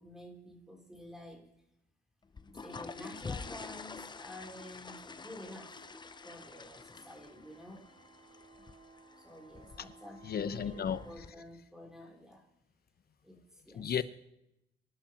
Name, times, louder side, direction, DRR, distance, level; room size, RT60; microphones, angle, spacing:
voice 1, 0.0-1.5 2.5-5.8 6.2-7.9 9.2-12.4 13.2-13.9, left 1 dB, ahead, 3.4 m, -50 dB
sound 1, 2.2-11.3, left 4 dB, 20° left, 0.7 m, -47 dB
sound 2, 5.1-11.1, right 3 dB, 75° right, 4.0 m, -61 dB
voice 2, 10.2-11.2 13.7-14.0, left 8 dB, 50° left, 1.0 m, -34 dB
24.5 x 12.0 x 3.0 m
cardioid pair, 90°, 20 cm